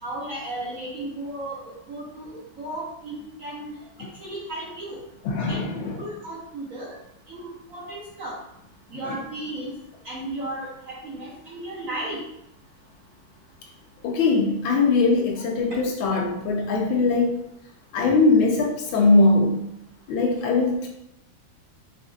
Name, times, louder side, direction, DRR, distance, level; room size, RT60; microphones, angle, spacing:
voice 1, 0.0-3.7 4.2-5.0 5.5-7.0 7.3-8.4 8.9-9.7 10.0-12.2, right 1 dB, 55° right, -5 dB, 1.0 m, -35 dB
voice 2, 5.2-6.1 9.0-9.2 14.0-17.4 17.9-19.6 20.1-20.9, left 3 dB, 80° left, 1 dB, 1.5 m, -21 dB
5.0 x 2.6 x 2.4 m, 0.79 s
omnidirectional pair, 2.2 m